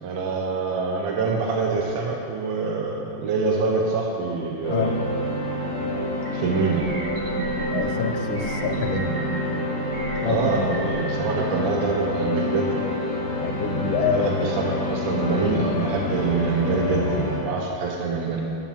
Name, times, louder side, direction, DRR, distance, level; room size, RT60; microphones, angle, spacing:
voice 1, 0.0-4.9 6.3-6.8 10.2-12.9 14.1-18.4, right 4 dB, 75° right, 0 dB, 1.6 m, -25 dB
sound 1, 4.6-17.4, left 1 dB, 55° left, 2.3 m, -28 dB
sound 2, 6.2-6.3 6.8-7.8 8.3-9.4 9.9-11.0, right 3 dB, 40° right, 1.6 m, -33 dB
voice 2, 7.7-9.1 10.2-10.7 13.4-14.4, left 7 dB, 90° left, 6 dB, 1.5 m, -27 dB
11.5 x 4.6 x 5.8 m, 2.5 s
omnidirectional pair, 2.2 m